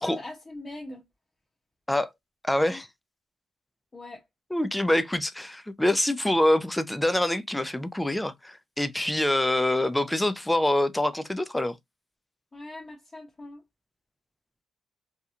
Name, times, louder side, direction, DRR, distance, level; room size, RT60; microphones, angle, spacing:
voice 1, 0.0-1.0 3.9-4.2 12.5-13.6, left 2 dB, 30° left, 0.7 m, -41 dB
voice 2, 2.4-2.9 4.5-11.8, left 1 dB, 10° left, 0.4 m, -25 dB
2.8 x 2.2 x 2.4 m
cardioid pair, 75°, 0 cm